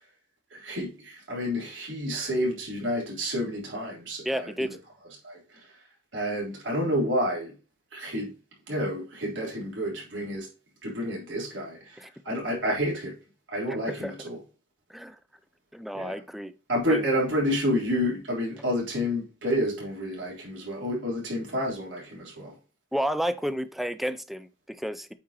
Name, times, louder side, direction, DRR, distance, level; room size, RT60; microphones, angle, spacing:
voice 1, 0.5-4.5 5.2-5.7 6.1-7.5 7.9-8.3 8.7-10.5 10.8-13.1 13.5-14.4 15.9-16.2 16.7-22.5, equal, 75° right, 3.6 m, -29 dB
voice 2, 4.2-4.8 12.0-12.4 13.7-14.1 14.9-15.2 15.7-16.5 16.9-17.0 22.9-25.1, equal, ahead, 0.4 m, -31 dB
8.4 x 5.0 x 2.9 m
head